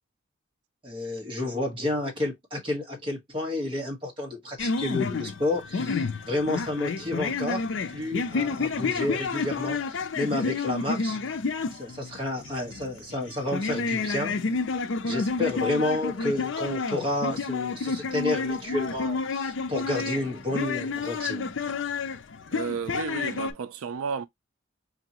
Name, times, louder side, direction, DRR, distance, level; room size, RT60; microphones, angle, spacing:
voice 1, 0.8-7.6 7.9-11.2 11.7-14.4 15.1-21.5, left 1 dB, 25° right, 1.3 m, -30 dB
sound 1, 4.6-23.5, left 4 dB, 65° left, 0.5 m, -30 dB
voice 2, 22.5-24.3, right 6 dB, 90° right, 0.4 m, -32 dB
4.5 x 2.9 x 2.8 m
head